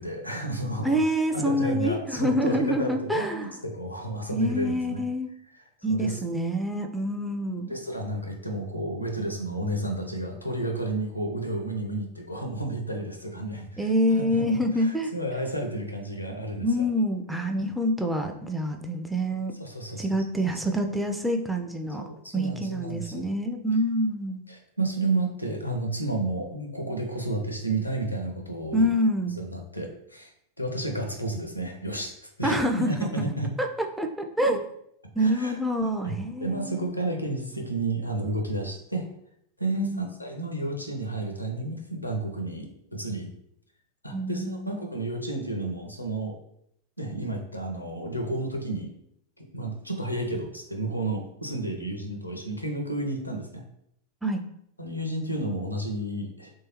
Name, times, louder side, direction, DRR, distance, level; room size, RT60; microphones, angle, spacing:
voice 1, 0.0-1.0 1.3-5.0 5.9-6.2 7.7-16.7 19.6-20.1 22.0-23.2 24.5-28.9 29.4-30.3 30.6-32.6 32.9-33.5 35.2-35.6 36.0-39.1 39.6-43.3 44.0-46.3 47.0-48.9 49.4-53.6 54.8-56.5, right 2 dB, 90° left, 3 dB, 0.5 m, -31 dB
voice 2, 0.8-3.6 4.3-5.3 5.8-7.7 13.8-15.1 16.6-19.5 20.0-22.0 22.3-24.4 28.7-29.4 32.4-33.3 33.6-34.6 35.2-36.9 39.7-40.1 44.1-44.8 54.2-54.4, equal, 5° right, 2 dB, 0.3 m, -26 dB
3.2 x 2.7 x 2.9 m, 0.74 s
figure-of-eight pair, 90°, 0 cm